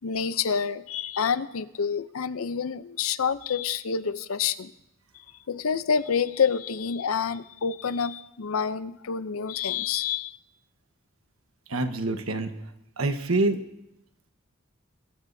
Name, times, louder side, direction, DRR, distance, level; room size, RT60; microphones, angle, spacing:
voice 1, 0.0-4.7 5.5-10.4, left 6 dB, 85° left, 15 dB, 0.6 m, -28 dB
voice 2, 11.7-12.5 13.0-13.6, right 2 dB, 85° right, 7 dB, 1.2 m, -26 dB
22.5 x 14.0 x 2.7 m, 0.84 s
head